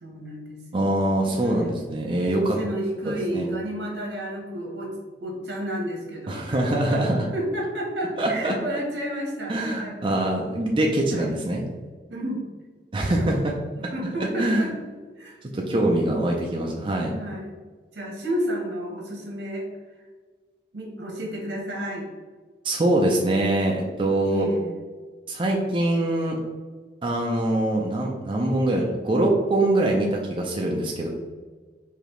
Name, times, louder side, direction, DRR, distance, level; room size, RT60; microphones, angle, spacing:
voice 1, 0.0-1.0 1.4-1.7 2.6-4.9 5.2-6.4 6.8-7.0 7.3-10.0 11.1-11.3 12.1-12.4 13.2-13.4 13.8-15.4 17.1-17.6 17.9-19.7 20.7-22.1 24.2-24.8, right 1 dB, 75° right, -1 dB, 1.2 m, -31 dB
voice 2, 0.7-2.6 3.1-3.4 6.3-7.3 8.2-8.6 9.5-11.6 12.9-13.5 14.2-14.7 15.4-17.1 22.6-24.5 25.3-26.4 27.0-31.1, right 1 dB, 30° right, -1 dB, 0.4 m, -23 dB
5.0 x 2.7 x 3.1 m, 1.5 s
head